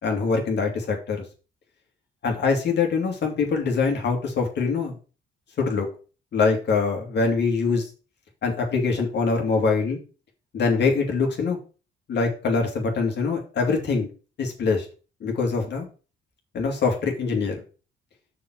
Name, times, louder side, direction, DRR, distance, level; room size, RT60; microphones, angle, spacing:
voice 1, 0.0-1.2 2.2-4.9 5.6-5.9 6.3-7.9 8.4-10.0 10.5-11.6 12.1-14.1 14.4-14.9 15.2-15.9 16.5-17.6, left 4 dB, 60° left, 2 dB, 2.5 m, -23 dB
6.3 x 4.6 x 6.0 m, 0.35 s
cardioid pair, 90°, 20 cm